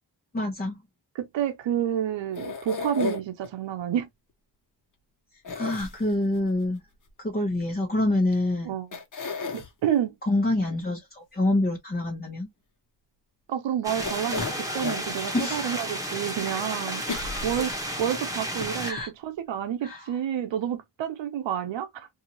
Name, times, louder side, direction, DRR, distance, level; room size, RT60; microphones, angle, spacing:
voice 1, 0.3-0.8 5.5-6.8 7.2-8.7 10.2-12.5 15.3-15.8 17.5-17.6 18.8-19.1 19.8-20.1, left 1 dB, 20° left, 1.0 m, -26 dB
voice 2, 1.1-4.1 8.6-8.9 9.5-10.2 13.5-22.1, right 10 dB, 90° right, 0.6 m, -29 dB
sound 1, 2.3-3.5 5.4-6.4 8.3-8.4 8.9-9.7 14.0-15.1 15.6-15.7 17.1-18.1 18.6-18.7 19.0-19.1, left 4 dB, 45° left, 1.1 m, -33 dB
sound 2, 13.8-18.9, equal, 10° right, 1.2 m, -32 dB
2.7 x 2.5 x 2.9 m
cardioid pair, 55°, 43 cm